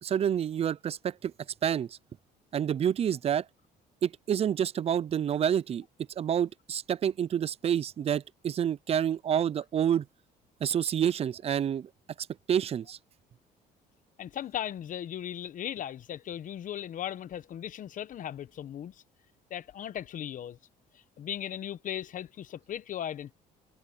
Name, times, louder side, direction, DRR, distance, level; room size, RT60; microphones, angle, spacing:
voice 1, 0.0-1.3 1.6-2.0 2.5-3.4 4.0-5.8 6.2-10.0 10.6-11.9 12.2-13.0, right 9 dB, 35° right, 0.4 m, -28 dB
voice 2, 14.2-18.9 19.5-20.6 21.2-23.3, left 10 dB, 50° left, 1.0 m, -37 dB
cardioid pair, 110°, 17 cm